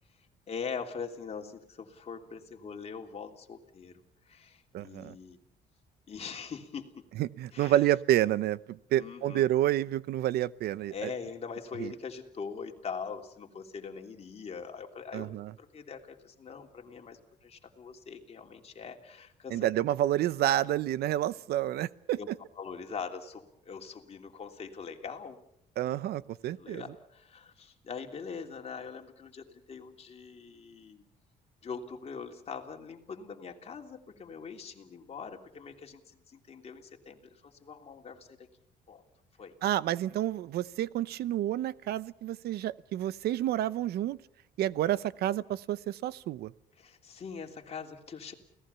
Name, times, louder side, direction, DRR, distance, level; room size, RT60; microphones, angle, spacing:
voice 1, 0.5-5.4 6.1-7.1 7.5-7.8 9.0-9.5 10.9-15.3 15.6-19.7 22.2-22.3 22.6-25.4 25.9-26.0 26.4-31.0 31.6-38.5 38.9-39.0 39.4-39.5 46.8-48.3, left 5 dB, 35° left, 3 dB, 3.3 m, -42 dB
voice 2, 4.7-5.1 7.2-11.1 11.8-11.9 15.1-15.5 19.5-22.2 25.8-26.8 39.6-44.2 44.6-46.5, right 13 dB, 70° right, 18 dB, 0.9 m, -29 dB
29.5 x 18.0 x 7.0 m, 0.72 s
cardioid pair, 110°, 17 cm